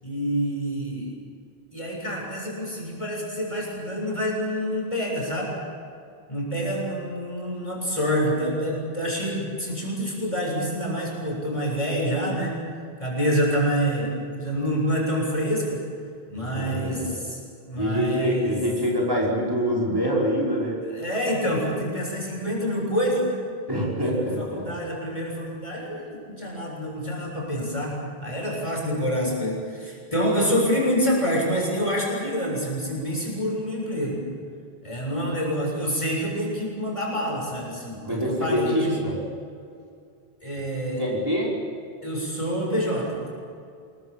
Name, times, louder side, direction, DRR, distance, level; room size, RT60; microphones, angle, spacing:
voice 1, 0.0-1.1 1.7-5.5 6.3-12.6 13.0-15.8 16.3-17.4 17.7-18.6 20.8-23.4 24.0-34.2 34.8-39.0 40.4-41.0 42.0-43.2, equal, 30° left, -2 dB, 7.4 m, -27 dB
voice 2, 16.4-17.2 17.8-20.8 23.7-24.6 38.0-39.1 41.0-41.5, equal, 20° right, -4 dB, 5.5 m, -25 dB
27.5 x 22.0 x 7.6 m, 2.4 s
omnidirectional pair, 1.1 m